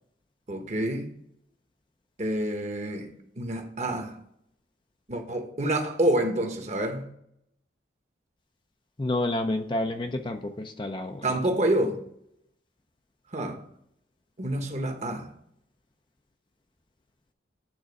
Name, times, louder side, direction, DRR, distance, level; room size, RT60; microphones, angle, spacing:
voice 1, 0.5-1.1 2.2-3.1 3.4-4.1 5.1-7.1 11.2-12.0 13.3-13.6 14.4-15.3, right 1 dB, 35° right, 1.1 m, -27 dB
voice 2, 9.0-11.2, left 2 dB, 25° left, 0.5 m, -29 dB
8.9 x 3.8 x 5.2 m
head